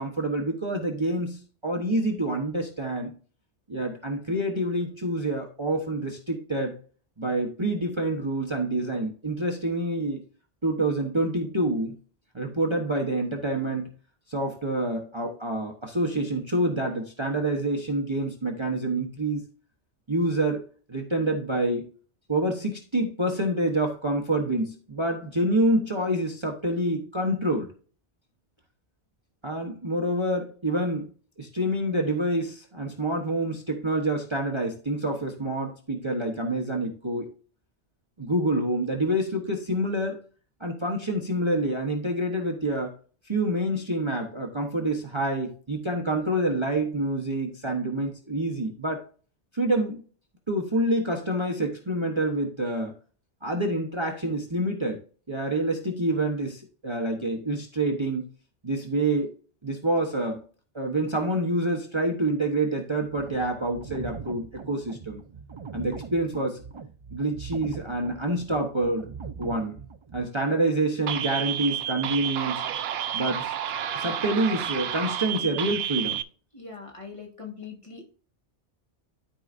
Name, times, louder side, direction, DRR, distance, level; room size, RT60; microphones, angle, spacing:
voice 1, 0.0-3.1 3.7-6.8 7.2-10.2 10.6-12.0 12.3-13.9 14.3-19.4 20.1-20.6 20.9-21.9 22.3-27.7 29.4-31.1 31.4-37.3 38.2-40.2 40.6-42.9 43.2-49.1 49.5-50.0 50.5-52.9 53.4-55.0 55.3-58.3 58.6-59.3 59.6-60.4 60.7-65.2 65.7-66.6 67.1-69.1 69.4-69.8 70.1-72.6 73.1-73.5 73.9-76.2, right 1 dB, 25° right, 1 dB, 1.1 m, -27 dB
sound 1, 63.1-70.2, right 5 dB, 45° right, 0.3 m, -41 dB
sound 2, 71.1-76.2, right 9 dB, 65° right, 0.7 m, -30 dB
voice 2, 76.5-78.1, left 5 dB, 30° left, -1 dB, 1.7 m, -41 dB
13.0 x 4.8 x 2.6 m, 0.40 s
omnidirectional pair, 1.2 m